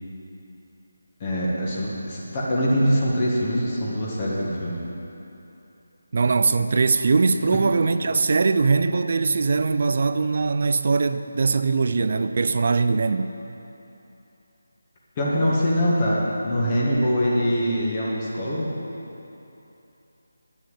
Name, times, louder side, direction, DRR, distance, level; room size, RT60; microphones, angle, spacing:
voice 1, 1.2-4.8 7.5-7.6 15.2-18.7, equal, 30° left, -6 dB, 1.8 m, -23 dB
voice 2, 6.1-13.4, right 4 dB, 50° right, 11 dB, 0.5 m, -21 dB
9.2 x 6.8 x 8.1 m, 3.0 s
figure-of-eight pair, 160°, 0 cm